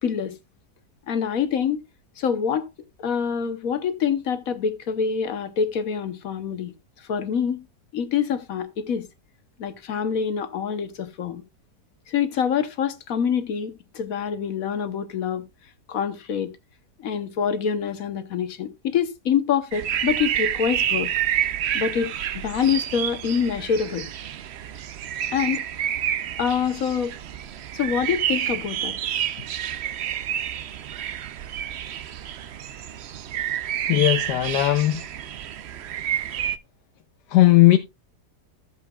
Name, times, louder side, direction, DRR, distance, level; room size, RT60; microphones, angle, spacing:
voice 1, 0.0-0.3 1.1-1.8 2.2-2.7 3.0-6.7 7.1-7.6 7.9-9.0 9.6-11.4 12.1-15.4 15.9-16.5 17.0-21.1 21.7-24.1 25.3-25.6 26.4-27.2 27.7-28.9, left 7 dB, 60° left, 1.4 m, -25 dB
sound 1, 19.7-36.6, right 10 dB, 65° right, 0.6 m, -29 dB
voice 2, 33.9-35.1 37.3-37.8, left 16 dB, 90° left, 1.3 m, -17 dB
14.5 x 7.5 x 2.3 m
omnidirectional pair, 1.7 m